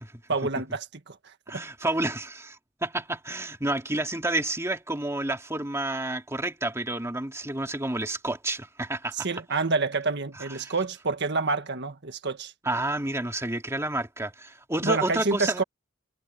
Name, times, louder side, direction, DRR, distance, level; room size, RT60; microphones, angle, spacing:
voice 1, 0.3-1.6 9.2-12.5 14.8-15.6, right 3 dB, 60° right, 1.7 m, -28 dB
voice 2, 1.5-9.3 10.4-10.7 12.6-15.6, right 2 dB, 15° right, 2.5 m, -30 dB
head